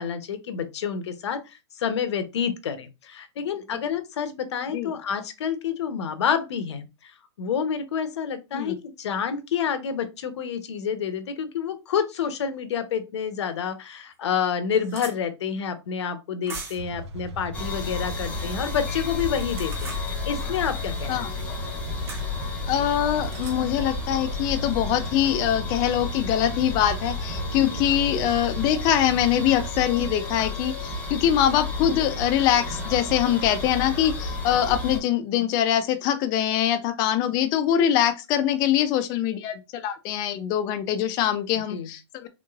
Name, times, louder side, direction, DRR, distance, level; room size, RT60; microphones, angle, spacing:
voice 1, 0.0-7.1 7.4-21.2 41.7-41.9, left 7 dB, 70° left, 0.8 m, -28 dB
sound 1, 13.5-13.6 14.1-14.2 14.4-15.2 16.5-16.9 19.3-20.1 22.1-22.3 23.2-23.6, right 3 dB, 15° right, 0.8 m, -39 dB
sound 2, 16.8-29.7, right 2 dB, 70° right, 0.6 m, -39 dB
sound 3, 17.5-35.0, left 3 dB, 10° left, 0.9 m, -32 dB
voice 2, 22.7-42.3, left 10 dB, 25° left, 0.4 m, -23 dB
3.6 x 3.1 x 2.4 m
hypercardioid pair, 155°, 15 cm